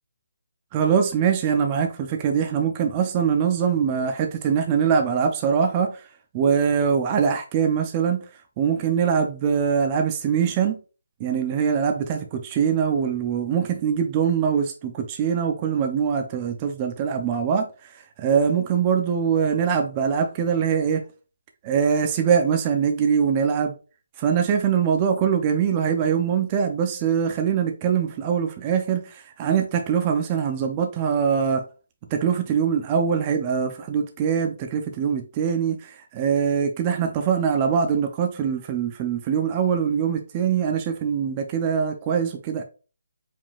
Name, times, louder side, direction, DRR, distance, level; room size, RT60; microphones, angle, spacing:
voice 1, 0.7-6.0 6.3-8.2 8.6-10.8 11.2-17.7 18.2-21.0 21.6-23.7 24.2-31.6 32.1-42.6, right 7 dB, 25° right, 0.5 m, -23 dB
4.9 x 3.6 x 2.4 m
hypercardioid pair, 160°, 0 cm